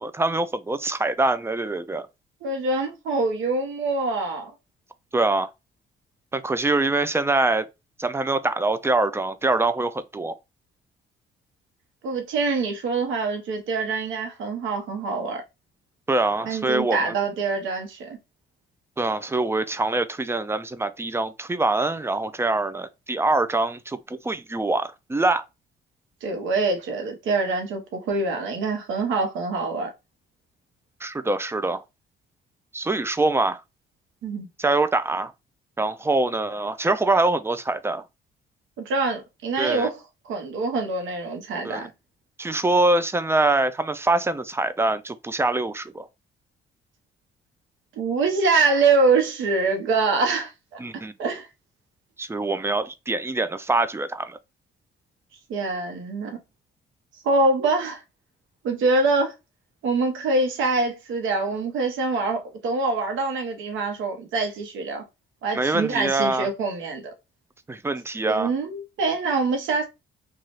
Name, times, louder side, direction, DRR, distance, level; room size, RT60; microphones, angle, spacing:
voice 1, 0.0-2.0 5.1-5.5 6.3-7.7 8.0-10.3 16.1-17.1 19.0-25.4 31.0-31.8 32.7-33.6 34.6-35.3 35.8-38.0 39.6-39.9 41.6-41.9 42.4-46.1 50.8-51.1 52.2-54.4 65.5-66.5 67.7-68.5, right 2 dB, 15° right, 0.3 m, -24 dB
voice 2, 2.4-4.5 12.0-15.4 16.4-18.2 26.2-29.9 34.2-34.5 38.8-41.9 48.0-50.8 51.2-51.5 55.5-56.4 57.2-58.0 58.6-59.3 59.8-65.0 65.4-67.1 68.3-69.9, right 3 dB, 80° right, 0.9 m, -25 dB
2.7 x 2.4 x 3.1 m
cardioid pair, 90°, 20 cm